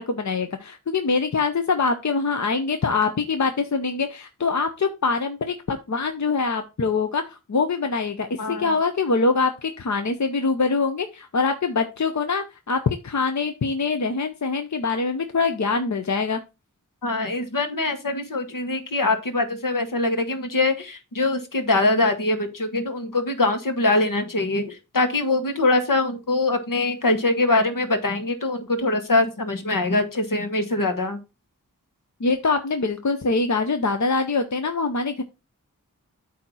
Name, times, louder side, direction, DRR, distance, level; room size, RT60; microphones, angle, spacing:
voice 1, 0.0-16.4 32.2-35.2, left 4 dB, 60° left, 7 dB, 0.8 m, -24 dB
voice 2, 8.4-8.7 17.0-31.2, left 2 dB, 80° left, 6 dB, 1.3 m, -23 dB
8.5 x 2.9 x 6.1 m, 0.28 s
wide cardioid pair, 50°, 33 cm